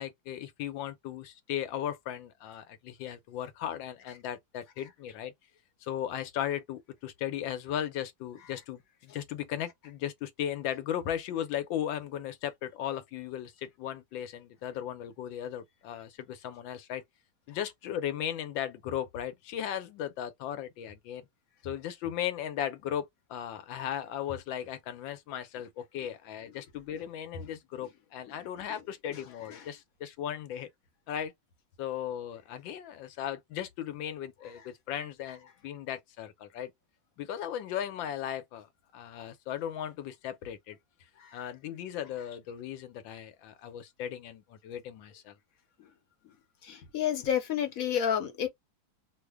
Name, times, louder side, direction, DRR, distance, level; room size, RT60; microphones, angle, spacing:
voice 1, 0.0-5.3 5.8-17.0 17.5-21.3 21.6-30.7 31.1-31.3 31.8-36.7 37.2-38.7 38.9-40.8 41.3-45.3, left 10 dB, 85° left, 1.4 m, -37 dB
voice 2, 46.6-48.5, left 9 dB, 60° left, 1.0 m, -29 dB
3.2 x 2.1 x 3.3 m
omnidirectional pair, 2.1 m